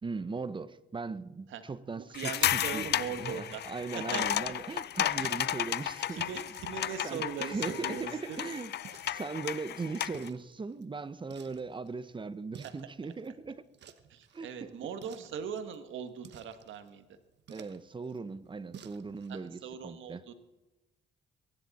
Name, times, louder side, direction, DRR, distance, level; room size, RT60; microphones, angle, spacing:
voice 1, 0.0-2.9 3.2-6.4 7.0-8.7 9.0-13.6 14.3-14.8 17.5-20.2, right 4 dB, 25° right, 0.8 m, -39 dB
voice 2, 1.9-3.6 3.9-4.3 5.1-8.5 12.6-12.7 14.1-17.2 19.3-20.3, right 7 dB, 75° right, 1.5 m, -41 dB
sound 1, 2.1-10.3, left 11 dB, 55° left, 0.5 m, -33 dB
sound 2, 4.6-19.4, right 8 dB, 60° right, 1.1 m, -56 dB
23.0 x 11.0 x 4.2 m
cardioid pair, 90°, 20 cm